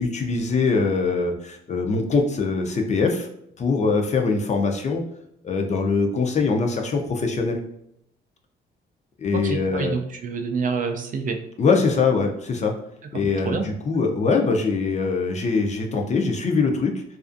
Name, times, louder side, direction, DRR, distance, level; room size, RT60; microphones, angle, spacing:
voice 1, 0.0-3.3 3.6-5.0 5.4-7.6 9.2-10.0 11.6-12.7 13.1-17.0, left 4 dB, 35° left, 3 dB, 0.5 m, -22 dB
voice 2, 9.3-11.4 13.4-13.6, right 5 dB, 40° right, 6 dB, 0.4 m, -27 dB
2.4 x 2.3 x 2.5 m, 0.73 s
cardioid pair, 90°, 20 cm